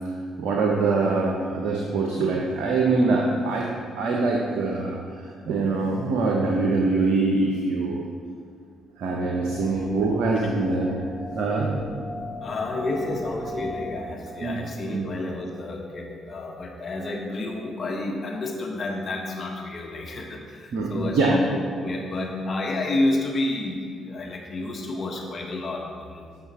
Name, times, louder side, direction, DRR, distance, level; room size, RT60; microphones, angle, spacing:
voice 1, 0.4-3.7 4.0-8.0 9.0-11.1 11.3-11.7 14.4-14.6 14.9-15.1 20.7-21.3, right 3 dB, 70° right, -1 dB, 0.8 m, -24 dB
sound 1, 9.1-14.0, left 2 dB, 10° left, 0.8 m, -37 dB
voice 2, 12.4-26.3, left 2 dB, 50° left, 0 dB, 1.4 m, -30 dB
7.9 x 5.7 x 4.2 m, 2.1 s
hypercardioid pair, 50°, 0 cm